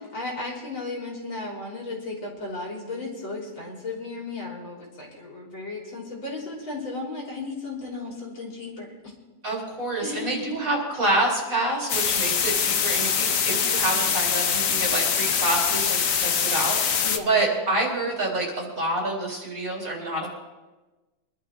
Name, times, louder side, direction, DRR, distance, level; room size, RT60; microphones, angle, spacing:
voice 1, 0.1-8.9 10.0-10.6 17.0-17.4, left 3 dB, 85° left, -3 dB, 4.2 m, -35 dB
voice 2, 9.4-20.3, right 2 dB, 45° right, -2 dB, 4.7 m, -27 dB
sound 1, 11.9-17.2, left 7 dB, 55° left, 1.1 m, -24 dB
24.0 x 11.5 x 3.6 m, 1.2 s
omnidirectional pair, 2.1 m